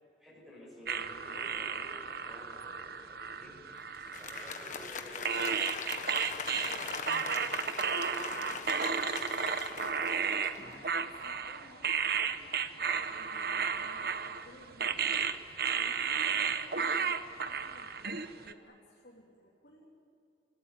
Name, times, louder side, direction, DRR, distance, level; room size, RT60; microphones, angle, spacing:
voice 1, 0.2-3.6 4.2-9.7, equal, ahead, -6 dB, 6.4 m, -52 dB
sound 1, 0.9-4.9 5.3-18.5, right 6 dB, 55° right, 1.1 m, -33 dB
Applause, 3.9-10.9, left 5 dB, 45° left, 1.5 m, -41 dB
voice 2, 9.7-19.8, left 1 dB, 65° left, -4 dB, 3.3 m, -56 dB
29.5 x 17.0 x 9.3 m, 2.7 s
head